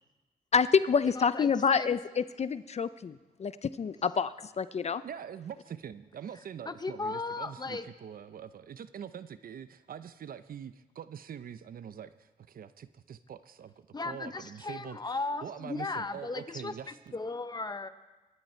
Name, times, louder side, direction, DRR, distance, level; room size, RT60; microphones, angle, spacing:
voice 1, 0.5-5.0, left 6 dB, 40° left, 15 dB, 0.5 m, -28 dB
voice 2, 1.1-1.9 6.6-7.9 13.9-17.9, left 3 dB, 25° left, 10 dB, 0.9 m, -36 dB
voice 3, 5.0-15.0 15.4-17.1, right 8 dB, 65° right, 13 dB, 0.6 m, -44 dB
23.5 x 10.5 x 4.4 m, 1.1 s
cardioid pair, 80°, 16 cm